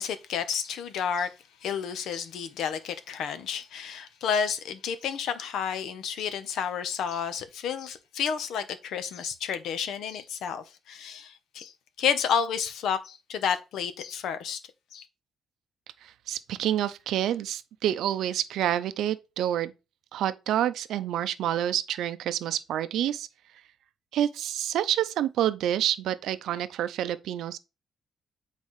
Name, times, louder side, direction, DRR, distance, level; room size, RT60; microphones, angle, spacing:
voice 1, 0.0-1.3 1.6-11.7 12.0-14.6 14.9-15.0, left 7 dB, 80° left, 0.8 m, -31 dB
voice 2, 16.0-19.7 20.1-23.3 24.1-27.6, right 11 dB, 80° right, 0.5 m, -28 dB
8.4 x 4.1 x 3.1 m
cardioid pair, 140°, 0 cm